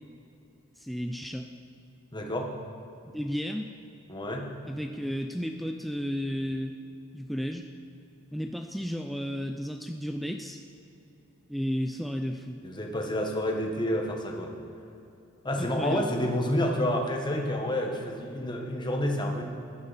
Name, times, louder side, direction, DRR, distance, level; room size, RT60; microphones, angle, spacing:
voice 1, 0.8-1.5 3.1-3.7 4.6-6.8 7.1-7.7 8.3-10.6 11.5-12.6 15.6-16.1, equal, ahead, 4 dB, 0.3 m, -33 dB
voice 2, 2.1-2.5 4.1-4.5 12.6-14.6 15.4-19.5, left 1 dB, 20° left, 1 dB, 1.2 m, -29 dB
14.5 x 11.0 x 4.1 m, 2.8 s
head